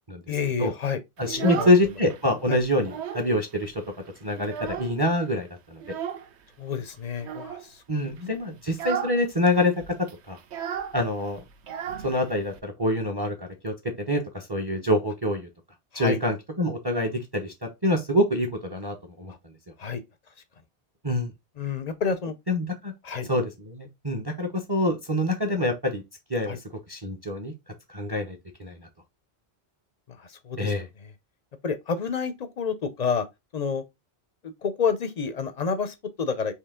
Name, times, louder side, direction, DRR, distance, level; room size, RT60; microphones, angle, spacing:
voice 1, 0.3-1.0 1.4-1.7 2.5-2.6 6.6-7.8 15.9-16.2 19.8-20.0 21.6-22.3 23.0-23.3 26.5-26.6 30.1-30.7 31.0-31.1 31.6-33.3 33.5-33.8 34.4-36.5, left 5 dB, 50° left, 0.5 m, -29 dB
voice 2, 1.2-3.8 4.2-5.8 7.9-9.7 10.3-10.4 10.9-11.4 12.0-15.5 15.9-17.5 17.8-19.3 21.0-21.3 22.5-22.9 23.3-26.0 26.3-26.6 26.9-27.5 27.9-28.8 30.6-30.9, left 1 dB, 25° right, 0.7 m, -26 dB
Child speech kid speaking, 1.2-2.2 2.6-3.3 3.6-3.7 4.1-5.2 5.8-6.3 7.2-7.7 8.1-8.3 8.7-9.2 9.5-9.6 9.8-12.6, right 8 dB, 75° right, 1.0 m, -34 dB
4.6 x 2.9 x 3.6 m
omnidirectional pair, 1.2 m